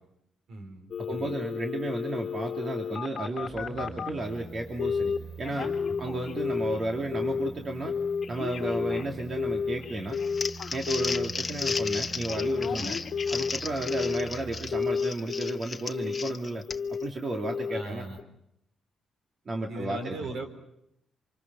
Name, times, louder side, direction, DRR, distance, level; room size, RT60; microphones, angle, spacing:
voice 1, 0.5-1.3 5.9-6.0 12.7-12.9 17.7-18.2 19.7-20.5, right 2 dB, 65° right, 6 dB, 4.5 m, -38 dB
Telephone, 0.9-4.2 4.8-5.2 5.4-6.8 7.1-7.5 7.9-11.3 11.6-12.0 12.3-14.3 14.7-15.6 15.9-16.3 16.7-17.1 17.4-17.8 18.2-18.3, left 6 dB, 50° left, 1.7 m, -31 dB
voice 2, 1.0-5.7 6.0-8.0 8.3-10.2 10.7-13.0 13.3-18.1 19.5-20.1, right 2 dB, 40° right, 1 dB, 2.7 m, -33 dB
sound 1, 3.3-14.9 15.3-15.4, right 1 dB, 15° right, 3.1 m, -44 dB
Crumpling crinkling, 10.1-17.0, left 4 dB, 30° left, 1.1 m, -35 dB
27.5 x 26.0 x 6.2 m, 0.79 s
cardioid pair, 90°, 0 cm